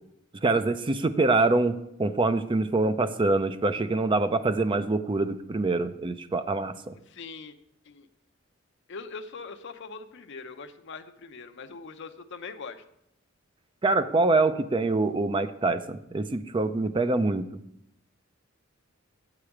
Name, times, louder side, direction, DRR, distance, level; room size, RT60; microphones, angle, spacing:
voice 1, 0.4-7.0 13.8-17.5, right 3 dB, 25° right, 10 dB, 0.4 m, -25 dB
voice 2, 7.1-7.5 7.8-8.1 8.9-12.8, left 4 dB, 60° left, 7 dB, 0.6 m, -42 dB
7.8 x 4.9 x 7.1 m, 0.77 s
head